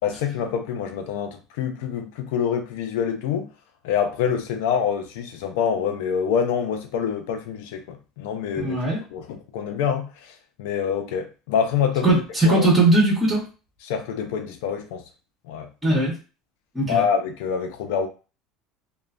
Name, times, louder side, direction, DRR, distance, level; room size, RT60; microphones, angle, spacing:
voice 1, 0.0-3.5 3.8-8.8 9.1-12.1 12.4-12.7 13.8-15.0 15.5-15.7 16.9-18.1, left 7 dB, 80° left, 0.4 m, -26 dB
voice 2, 8.5-9.0 12.0-13.4 15.8-16.1 16.7-17.0, right 2 dB, 10° right, 1.5 m, -19 dB
3.0 x 2.2 x 2.5 m
supercardioid pair, 135°, 0 cm